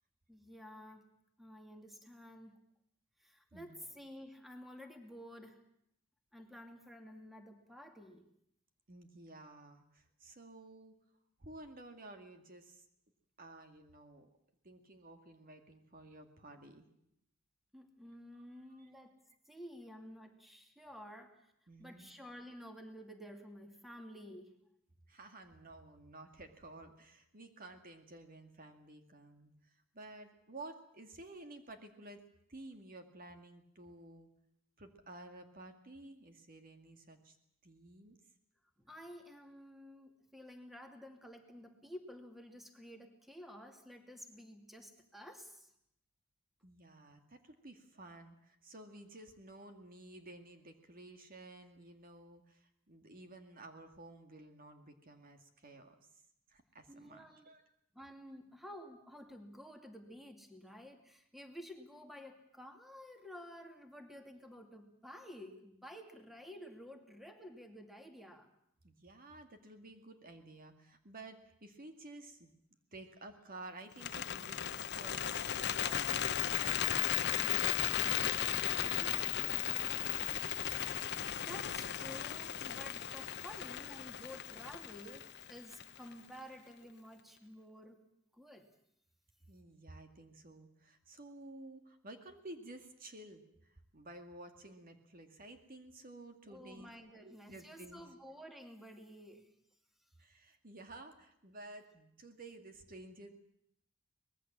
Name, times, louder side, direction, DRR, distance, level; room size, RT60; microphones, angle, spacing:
voice 1, 0.3-1.1 1.4-2.5 3.2-5.6 6.3-8.3 17.7-19.2 19.5-21.5 21.8-24.6 38.8-45.7 56.9-57.5 57.9-68.5 81.4-88.0 88.3-88.7 96.5-99.5, equal, ahead, 4 dB, 2.6 m, -52 dB
voice 2, 8.9-11.0 11.4-12.8 13.4-14.3 14.6-16.9 18.3-18.9 21.7-22.1 25.1-32.2 32.5-34.3 34.8-37.4 37.6-38.2 46.6-56.1 56.5-57.6 68.8-72.5 72.9-80.5 89.5-96.9 97.2-98.0 100.2-103.3, right 2 dB, 45° right, 6 dB, 2.3 m, -53 dB
Bird, 73.9-86.1, left 10 dB, 55° left, 0.8 m, -36 dB
24.5 x 20.0 x 7.5 m, 0.74 s
head